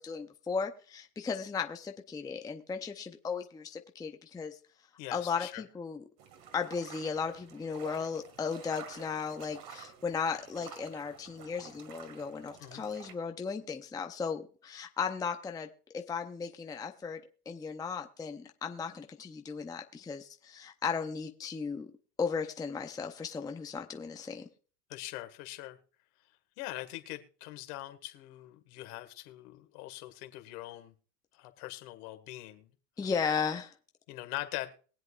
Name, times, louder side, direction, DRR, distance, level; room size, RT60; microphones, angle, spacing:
voice 1, 0.0-4.6 5.1-6.0 6.5-21.9 22.2-24.4 33.0-33.7, left 5 dB, 10° left, 0.6 m, -36 dB
voice 2, 5.0-5.6 12.6-12.9 24.9-25.8 26.6-30.9 31.3-32.7 33.0-33.1 34.1-34.7, left 17 dB, 65° left, 1.9 m, -42 dB
sound 1, 6.2-13.2, right 7 dB, 50° right, 2.1 m, -51 dB
22.5 x 7.9 x 2.4 m
supercardioid pair, 115°, 48 cm